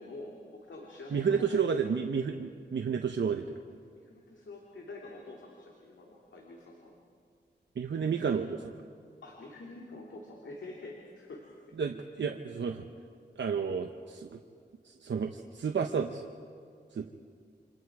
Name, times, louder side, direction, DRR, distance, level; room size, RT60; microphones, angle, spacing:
voice 1, 0.0-1.8 4.0-6.9 8.0-8.3 9.2-11.5, left 2 dB, 90° left, -2 dB, 2.7 m, -47 dB
voice 2, 1.1-3.6 7.8-8.7 11.8-12.9 13.4-14.4 14.8-16.3 16.9-17.1, right 6 dB, 80° right, 4 dB, 0.9 m, -31 dB
28.5 x 25.5 x 4.9 m, 2.2 s
cardioid pair, 60°, 19 cm